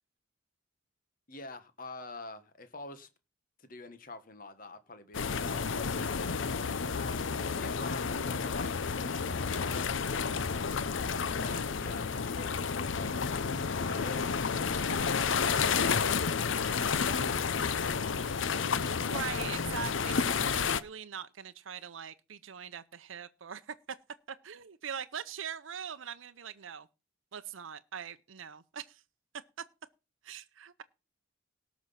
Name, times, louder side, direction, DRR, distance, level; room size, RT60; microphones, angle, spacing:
voice 1, 1.3-3.1 3.6-13.2 13.8-17.9, left 2 dB, 45° left, 1.4 m, -47 dB
sound 1, 5.1-20.8, left 5 dB, 75° left, 0.6 m, -31 dB
voice 2, 18.8-23.7 24.3-26.9 27.3-29.0 30.2-30.8, right 7 dB, 75° right, 0.6 m, -42 dB
18.0 x 6.1 x 5.6 m
head